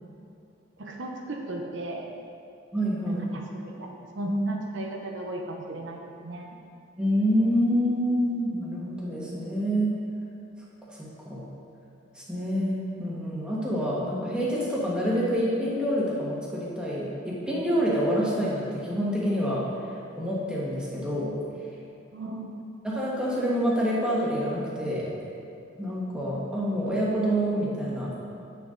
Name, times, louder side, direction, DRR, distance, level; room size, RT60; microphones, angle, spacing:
voice 1, 0.8-2.0 3.0-6.6 22.1-22.6, right 1 dB, 70° right, 1 dB, 0.8 m, -34 dB
voice 2, 2.7-3.2 7.0-9.9 11.0-11.4 12.1-19.6 20.1-21.3 22.8-25.1 25.8-28.2, equal, 5° right, -6 dB, 1.5 m, -27 dB
8.3 x 6.7 x 3.8 m, 2.5 s
head